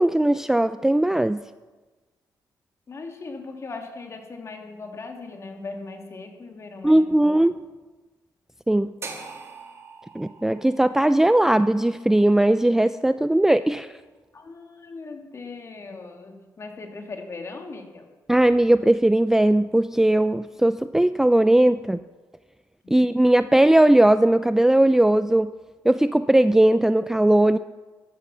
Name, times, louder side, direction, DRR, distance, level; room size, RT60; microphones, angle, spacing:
voice 1, 0.0-1.4 6.8-7.5 8.7-8.9 10.1-13.9 18.3-22.0 22.9-25.5 25.8-27.6, right 1 dB, 5° right, 12 dB, 0.4 m, -18 dB
voice 2, 2.9-7.5 14.3-18.1 22.8-23.1, left 3 dB, 40° left, 3 dB, 2.4 m, -39 dB
sound 1, 9.0-13.1, right 4 dB, 40° right, 2.5 m, -43 dB
14.5 x 11.5 x 6.1 m, 1.3 s
cardioid pair, 90°, 7 cm